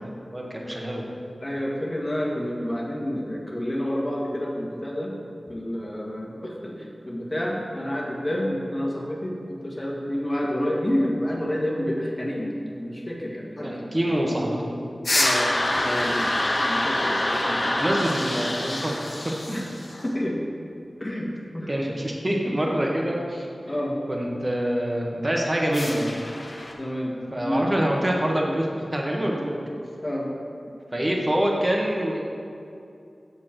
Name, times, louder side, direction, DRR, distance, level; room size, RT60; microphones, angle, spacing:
voice 1, 0.3-1.0 13.6-14.8 17.6-19.2 21.7-23.5 24.1-26.1 27.3-29.6 30.9-32.2, equal, 30° right, -1 dB, 1.4 m, -25 dB
voice 2, 1.4-5.2 5.5-13.9 15.1-15.5 15.8-16.3 16.6-17.6 19.5-19.6 20.0-20.4 21.0-21.7 23.7-24.0 26.8-27.2 27.4-27.7 30.0-30.3, equal, 35° left, -3 dB, 1.6 m, -29 dB
sound 1, 15.0-20.1 25.7-26.7, left 1 dB, 55° left, 1.0 m, -26 dB
7.3 x 6.7 x 4.4 m, 2.5 s
cardioid pair, 40°, 0 cm